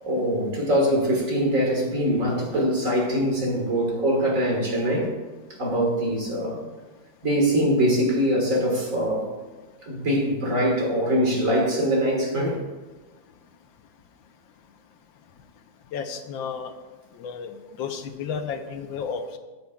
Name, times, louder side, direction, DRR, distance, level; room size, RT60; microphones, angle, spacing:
voice 1, 0.0-5.1 5.6-6.7 7.2-9.3 9.9-12.6, equal, 45° right, -1 dB, 2.0 m, -23 dB
voice 2, 15.9-16.7 17.1-19.4, left 6 dB, 80° left, 7 dB, 1.4 m, -32 dB
13.5 x 8.0 x 2.3 m, 1.3 s
omnidirectional pair, 2.1 m